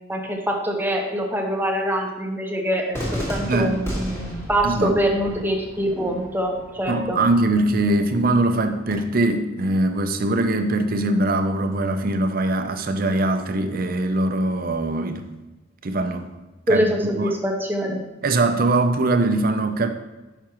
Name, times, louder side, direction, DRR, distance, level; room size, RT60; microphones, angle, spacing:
voice 1, 0.1-7.2 16.7-18.0, equal, 10° right, 2 dB, 0.9 m, -24 dB
Cheering / Fireworks, 2.9-8.9, equal, 15° left, 1.8 m, -34 dB
voice 2, 3.5-3.8 4.6-5.0 6.9-15.3 15.8-16.3 16.7-16.8 17.1-17.3 18.2-19.9, right 2 dB, 50° right, 7 dB, 0.6 m, -22 dB
9.6 x 5.9 x 3.0 m, 1.1 s
head